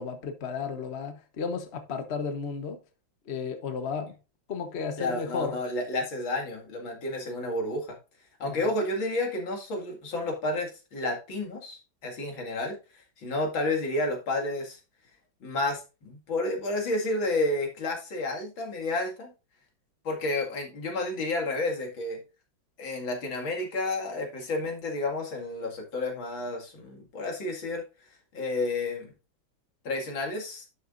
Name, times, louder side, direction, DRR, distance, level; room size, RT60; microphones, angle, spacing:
voice 1, 0.0-2.8 3.3-4.1 4.5-5.6 8.4-8.7, left 5 dB, 40° left, 1.1 m, -33 dB
voice 2, 5.0-8.0 8.4-14.8 15.4-19.3 20.0-22.2 22.8-27.8 28.3-29.1 29.8-30.6, left 2 dB, 80° left, 2.9 m, -31 dB
11.0 x 6.7 x 2.5 m
omnidirectional pair, 2.1 m